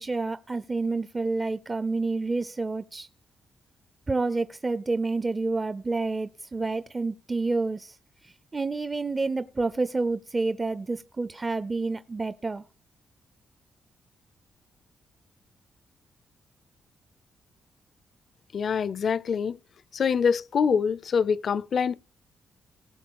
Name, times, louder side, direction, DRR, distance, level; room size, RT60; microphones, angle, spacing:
voice 1, 0.0-3.1 4.1-8.0 8.2-12.6, right 3 dB, 25° right, 0.5 m, -29 dB
voice 2, 18.5-19.6 19.9-21.9, left 6 dB, 55° left, 0.5 m, -25 dB
18.5 x 6.5 x 4.7 m
cardioid pair, 100°, 0 cm